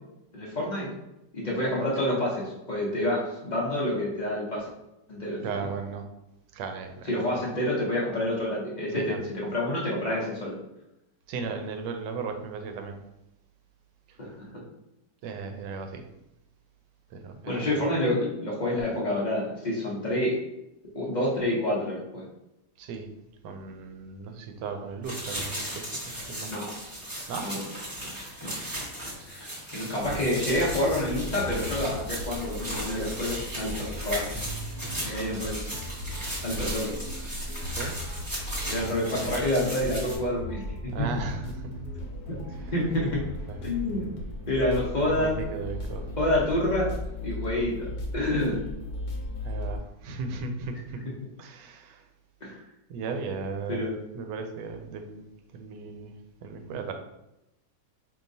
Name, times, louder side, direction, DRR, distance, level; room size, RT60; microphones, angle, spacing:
voice 1, 0.3-0.9 1.3-4.7 5.1-5.6 7.1-10.6 14.2-14.6 17.4-20.4 20.9-22.3 26.4-26.7 27.4-27.6 28.4-28.5 29.3-34.3 35.0-35.6 36.4-37.0 38.7-41.1 42.3-42.4 42.7-43.2 43.6-44.1 44.5-45.4 46.2-46.9 47.2-48.6 52.4-52.6 53.7-53.9, left 1 dB, 55° left, -4 dB, 0.4 m, -28 dB
voice 2, 5.4-6.0 6.5-7.1 8.9-9.2 11.3-13.0 14.1-14.2 15.2-16.1 17.1-17.9 22.8-23.1 23.4-26.5 27.3-27.5 37.7-38.0 40.9-41.9 42.5-42.7 43.5-43.6 45.0-46.1 49.4-51.0 51.4-52.1 52.9-53.9 54.1-55.2 55.5-56.9, right 4 dB, 80° right, 5 dB, 1.2 m, -36 dB
sound 1, 25.0-40.2, right 1 dB, 15° right, 1.1 m, -37 dB
sound 2, 30.0-49.8, left 1 dB, 75° left, 1.2 m, -37 dB
4.7 x 2.8 x 2.6 m, 0.89 s
omnidirectional pair, 1.9 m